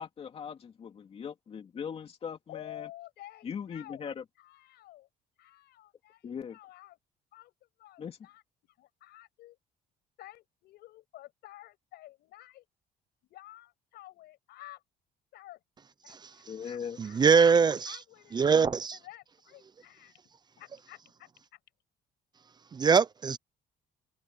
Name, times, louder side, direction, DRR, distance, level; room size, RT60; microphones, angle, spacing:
voice 1, 0.0-2.9 3.4-4.2 6.2-6.6 8.0-8.2 16.5-17.0, left 7 dB, 35° left, 2.6 m, -40 dB
voice 2, 2.5-4.1 4.4-5.1 5.4-7.0 7.3-9.6 10.2-12.7 13.3-14.8 15.3-15.6 16.0-17.4 17.8-18.6 18.9-20.2 20.6-21.6, left 15 dB, 80° left, 7.4 m, -51 dB
voice 3, 17.0-18.0 18.3-19.0 22.7-23.4, right 5 dB, 25° right, 0.6 m, -22 dB
cardioid pair, 150°, 17 cm